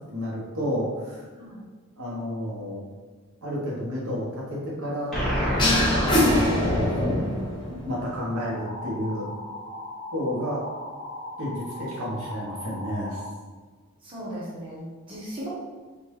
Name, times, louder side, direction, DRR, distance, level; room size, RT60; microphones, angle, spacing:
voice 1, 0.1-1.2 2.0-2.8 3.4-5.2 6.2-6.8 7.8-9.3 10.1-10.6 11.4-13.2, equal, 90° right, -5 dB, 1.2 m, -31 dB
sound 1, 5.1-8.4, equal, ahead, 0.9 m, -26 dB
sound 2, 5.6-7.4, left 1 dB, 20° left, 0.6 m, -23 dB
sound 3, 8.3-13.3, left 1 dB, 45° right, 1.0 m, -38 dB
voice 2, 14.0-15.5, equal, 25° right, -8 dB, 1.0 m, -37 dB
3.8 x 2.5 x 3.1 m, 1.4 s
head